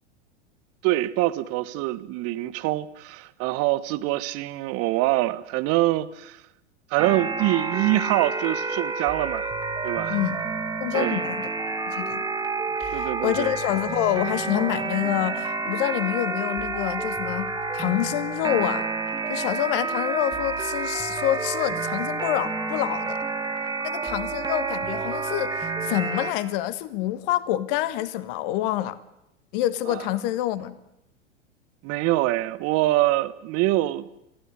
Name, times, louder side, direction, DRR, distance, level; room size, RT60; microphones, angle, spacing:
voice 1, 0.8-6.4 6.9-9.5 9.8-10.2 10.9-11.2 12.9-13.6 29.9-30.0 31.8-34.1, right 17 dB, 40° right, 1.3 m, -24 dB
sound 1, 7.0-26.3, right 3 dB, 10° right, 2.7 m, -29 dB
voice 2, 10.8-11.5 11.9-12.2 12.8-18.9 19.3-23.2 23.8-29.0 29.5-30.8, left 14 dB, 50° left, 1.6 m, -27 dB
27.5 x 15.5 x 9.8 m
figure-of-eight pair, 90°, 36 cm